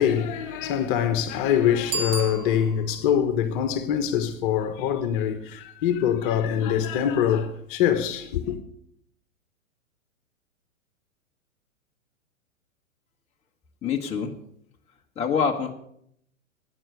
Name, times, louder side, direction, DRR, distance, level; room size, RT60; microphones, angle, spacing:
voice 1, 0.0-8.6, left 9 dB, 40° left, 1.4 m, -24 dB
Bicycle bell, 1.8-3.1, right 2 dB, 30° right, 2.8 m, -32 dB
voice 2, 13.8-14.3 15.2-15.7, left 6 dB, 15° left, 1.2 m, -25 dB
14.0 x 9.4 x 6.6 m
figure-of-eight pair, 110°, 41 cm